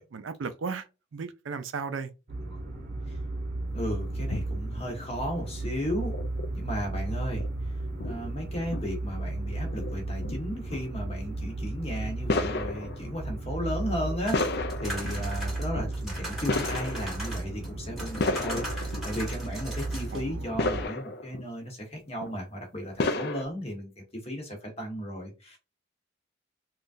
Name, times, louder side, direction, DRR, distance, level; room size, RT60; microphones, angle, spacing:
voice 1, 0.1-2.1 20.1-20.7, right 5 dB, 90° right, 0.5 m, -36 dB
sound 1, 2.3-20.8, right 2 dB, 40° right, 0.8 m, -35 dB
voice 2, 3.7-6.1 6.5-7.4 8.0-23.9 24.2-25.6, equal, 35° left, 1.2 m, -35 dB
sound 2, 4.3-4.5 5.9-6.5 7.4-7.5 8.0-8.3 8.7-8.8 9.6-9.9 10.2-10.4 10.7-10.8 11.1-11.3 12.2-13.1 13.9-15.3 15.7-15.9 16.4-17.3 17.6-19.3 19.6-19.7 20.2-21.4 22.1-22.3 23.0-23.4, left 3 dB, 55° left, 0.4 m, -32 dB
sound 3, 14.2-17.7 18.0-20.2, equal, ahead, 1.3 m, -39 dB
3.7 x 2.4 x 2.6 m
head